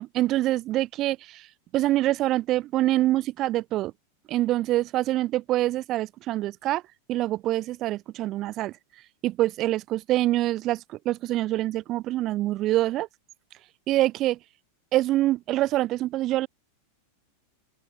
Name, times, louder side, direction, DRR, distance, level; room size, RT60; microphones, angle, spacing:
voice 1, 0.0-1.4 1.7-3.9 4.3-6.8 7.1-8.7 9.2-13.1 13.9-14.4 14.9-16.5, right 15 dB, 35° right, 1.7 m, -25 dB
open air
figure-of-eight pair, 90°, 0 cm